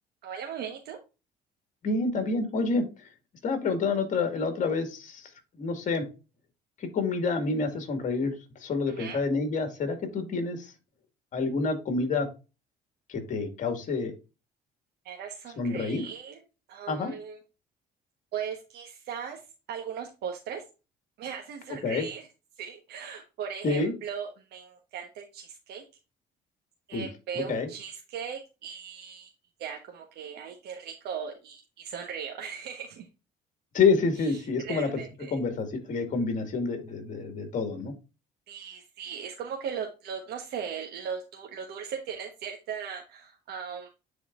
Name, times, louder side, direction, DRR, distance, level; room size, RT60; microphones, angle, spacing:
voice 1, 0.2-1.0 8.9-9.2 15.0-16.4 16.7-17.4 18.3-19.4 19.7-20.6 21.2-22.3 22.6-25.8 26.9-29.3 29.6-33.1 34.6-35.4 38.5-43.9, right 7 dB, 75° right, 2 dB, 1.2 m, -38 dB
voice 2, 1.8-2.8 3.4-5.3 5.6-6.0 6.8-8.3 8.6-10.7 11.3-12.3 13.1-14.1 15.6-16.0 16.9-17.1 21.8-22.1 23.6-23.9 26.9-27.1 27.3-27.7 33.7-34.9 35.3-37.9, left 4 dB, 50° left, 7 dB, 2.0 m, -28 dB
9.9 x 4.2 x 2.5 m, 0.29 s
cardioid pair, 110°, 17 cm